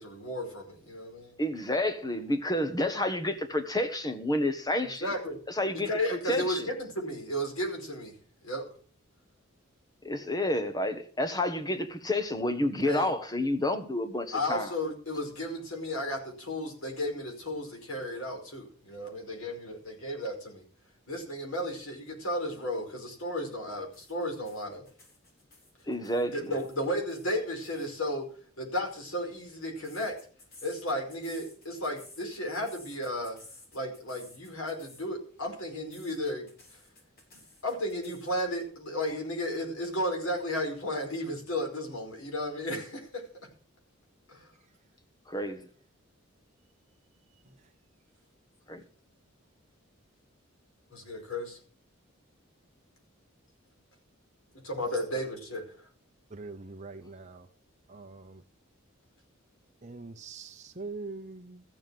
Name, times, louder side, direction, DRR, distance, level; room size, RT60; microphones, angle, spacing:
voice 1, 0.0-1.3 4.8-5.4 5.7-8.1 8.4-8.6 12.9-13.1 14.3-20.6 21.1-24.8 26.3-28.2 28.6-30.1 30.6-33.4 33.7-36.5 37.6-43.1 44.3-44.5 50.9-51.6 54.6-55.6, left 1 dB, 85° left, 5.0 m, -34 dB
voice 2, 1.4-5.1 5.5-5.9 6.3-6.7 10.0-14.7 25.9-26.5 45.3-45.7 48.7-48.8, left 1 dB, 20° left, 1.4 m, -29 dB
sound 1, 23.9-27.9 28.9-35.1 35.4-38.6, left 2 dB, 45° left, 5.8 m, -55 dB
voice 3, 56.3-57.5 57.9-58.4 59.8-61.6, right 3 dB, 35° right, 0.9 m, -43 dB
14.5 x 7.3 x 7.7 m
head